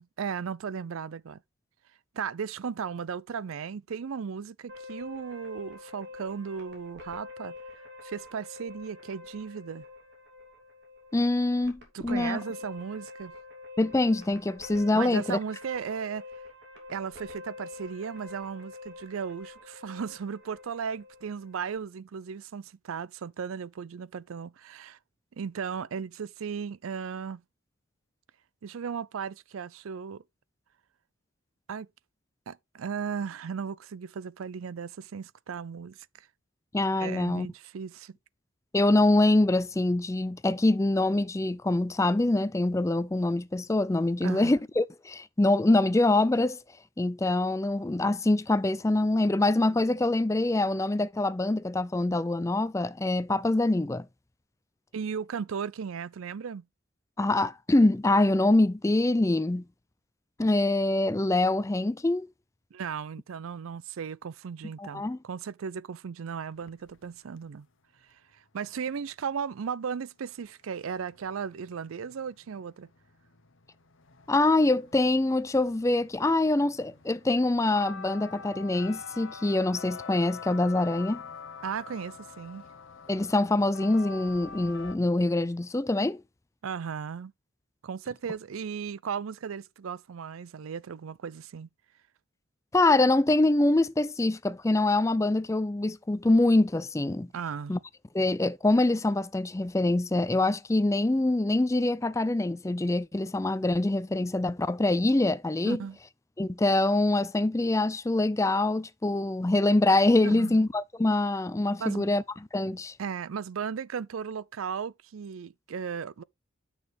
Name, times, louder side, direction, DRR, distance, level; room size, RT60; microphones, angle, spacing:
voice 1, 0.0-1.4 2.1-7.6 8.0-9.9 11.9-13.3 14.9-16.2 16.9-25.0 25.4-27.4 28.6-30.2 31.7-31.9 32.5-36.3 37.0-38.2 44.2-44.6 54.9-56.7 62.7-67.7 68.5-72.9 81.6-82.6 86.6-87.3 87.8-91.7 97.3-97.7 105.6-106.0 110.2-110.6 111.8-112.1 113.0-116.2, right 6 dB, 80° right, 0.4 m, -36 dB
sound 1, 4.7-21.8, left 3 dB, 55° right, 3.1 m, -46 dB
voice 2, 11.1-12.4 13.8-15.4 36.7-37.5 38.7-46.6 47.0-54.1 57.2-59.6 60.4-62.3 64.8-65.2 74.3-81.2 83.1-86.2 92.7-97.3 97.7-97.8 98.1-105.8 106.4-112.2 112.5-112.9, left 2 dB, 15° left, 0.4 m, -24 dB
sound 2, 66.5-67.4 70.4-70.5 70.7-85.0, left 5 dB, 65° left, 0.9 m, -46 dB
9.5 x 6.3 x 3.4 m
head